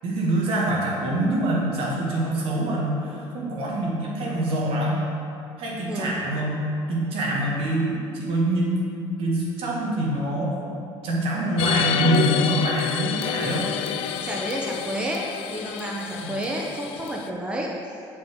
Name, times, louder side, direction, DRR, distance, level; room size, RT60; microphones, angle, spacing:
voice 1, 0.0-5.0 5.6-6.6 6.9-8.9 9.2-10.7 11.0-13.7 16.2-16.3, right 1 dB, 65° right, -4 dB, 1.8 m, -25 dB
voice 2, 5.9-6.2 14.2-15.2 15.5-17.7, right 1 dB, 10° right, -2 dB, 0.8 m, -30 dB
sound 1, 11.6-17.3, left 9 dB, 70° left, 0.4 m, -28 dB
8.8 x 5.2 x 3.6 m, 2.5 s
cardioid pair, 115°, 10 cm